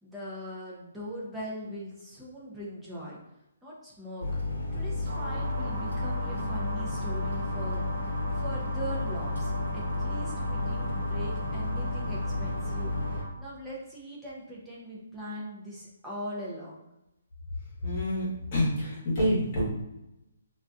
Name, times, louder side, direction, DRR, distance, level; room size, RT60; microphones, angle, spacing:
voice 1, 0.0-3.2 3.6-4.4 4.7-7.8 8.3-16.9, equal, 5° right, -7 dB, 0.7 m, -41 dB
sound 1, 4.2-13.2, left 2 dB, 90° left, 0.9 m, -32 dB
sound 2, 5.0-13.3, right 1 dB, 35° right, 0.8 m, -39 dB
voice 2, 17.8-19.6, left 1 dB, 30° left, -5 dB, 1.2 m, -27 dB
3.8 x 2.6 x 2.4 m, 0.91 s
hypercardioid pair, 170°, 0 cm